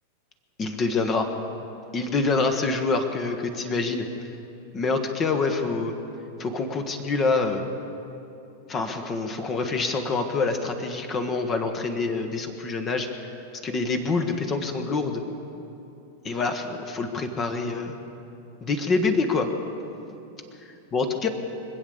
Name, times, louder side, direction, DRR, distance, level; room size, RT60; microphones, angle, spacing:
voice 1, 0.6-1.3 1.9-4.0 4.7-5.9 6.4-7.7 8.7-13.3 13.6-15.2 16.2-18.0 18.6-19.5 20.9-21.3, left 3 dB, 25° left, 6 dB, 1.3 m, -26 dB
25.0 x 8.5 x 6.8 m, 2.9 s
figure-of-eight pair, 90°, 0 cm